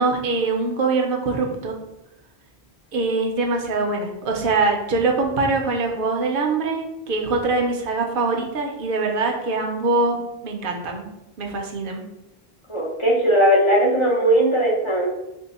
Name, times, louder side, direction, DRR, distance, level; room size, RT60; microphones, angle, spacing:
voice 1, 0.0-1.7 2.9-11.1 11.4-12.0, right 3 dB, 60° right, 2 dB, 0.8 m, -23 dB
voice 2, 12.7-15.1, right 1 dB, 35° left, -3 dB, 0.6 m, -18 dB
3.6 x 2.1 x 4.0 m, 0.93 s
omnidirectional pair, 1.0 m